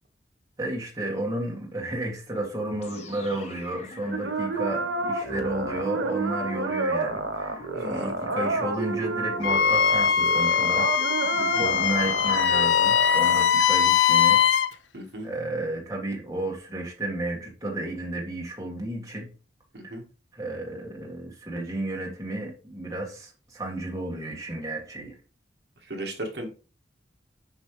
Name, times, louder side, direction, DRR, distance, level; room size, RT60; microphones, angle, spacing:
voice 1, 0.6-10.9 11.5-14.4 15.2-19.3 19.8-19.9 20.3-25.1, right 1 dB, 20° right, -2 dB, 1.7 m, -32 dB
sound 1, 2.8-12.7, left 2 dB, 35° left, 0.9 m, -44 dB
sound 2, 4.1-13.4, right 2 dB, 90° right, 1.0 m, -30 dB
voice 2, 7.7-8.1 11.4-11.7 14.9-15.3 19.7-20.0 25.9-26.5, right 1 dB, 60° right, 2 dB, 1.4 m, -35 dB
Wind instrument woodwind instrument, 9.4-14.7, left 8 dB, 80° left, 0.5 m, -21 dB
7.3 x 5.2 x 3.1 m, 0.35 s
head